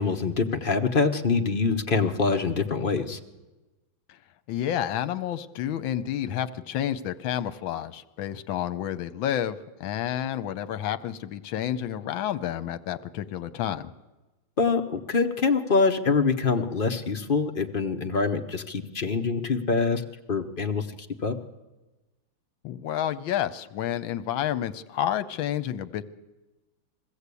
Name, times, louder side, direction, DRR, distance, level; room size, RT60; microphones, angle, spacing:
voice 1, 0.0-3.2 14.6-20.0 20.3-20.9 21.2-21.4, left 4 dB, 40° left, 5 dB, 0.8 m, -25 dB
voice 2, 4.5-13.9 22.6-26.0, left 11 dB, 75° left, 13 dB, 1.6 m, -30 dB
22.0 x 15.0 x 8.3 m, 1.1 s
omnidirectional pair, 2.2 m